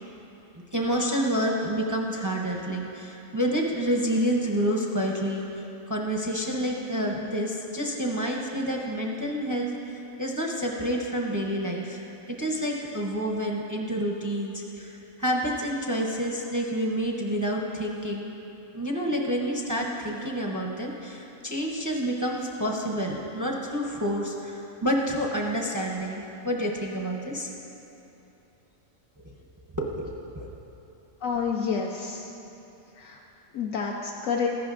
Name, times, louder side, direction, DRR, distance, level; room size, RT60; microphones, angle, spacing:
voice 1, 0.7-5.4 5.9-9.7 10.2-12.0 12.3-18.3 18.7-27.5 29.8-30.5, equal, 25° right, -1 dB, 0.4 m, -28 dB
voice 2, 31.2-32.2 33.0-33.2 33.5-34.5, left 6 dB, 75° left, -1 dB, 1.0 m, -29 dB
14.0 x 11.0 x 2.5 m, 3.0 s
omnidirectional pair, 1.4 m